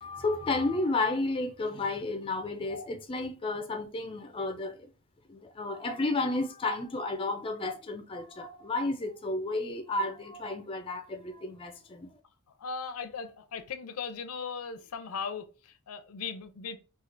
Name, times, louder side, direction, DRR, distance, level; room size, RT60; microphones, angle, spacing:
voice 1, 0.0-4.9 5.3-12.1, left 2 dB, 25° left, 0.3 m, -32 dB
voice 2, 12.6-16.8, left 5 dB, 80° left, 0.5 m, -38 dB
4.3 x 2.3 x 2.5 m
head